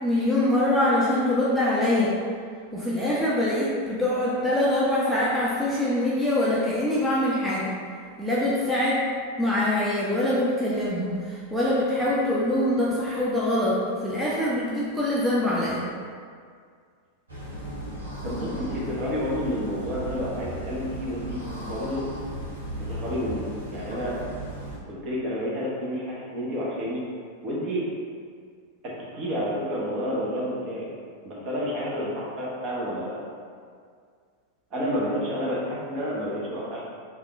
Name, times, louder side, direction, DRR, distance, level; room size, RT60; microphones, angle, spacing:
voice 1, 0.0-2.1 2.7-7.7 8.2-9.0 9.4-15.8, left 1 dB, 5° right, -8 dB, 0.5 m, -24 dB
sound 1, 17.3-24.8, right 1 dB, 80° right, 0.8 m, -36 dB
voice 2, 18.2-22.0 22.9-24.2 24.9-27.0 27.4-27.8 28.8-30.9 31.2-33.3 34.7-36.8, equal, 35° right, -5 dB, 0.9 m, -30 dB
3.5 x 2.3 x 3.1 m, 2.1 s
figure-of-eight pair, 90°, 0 cm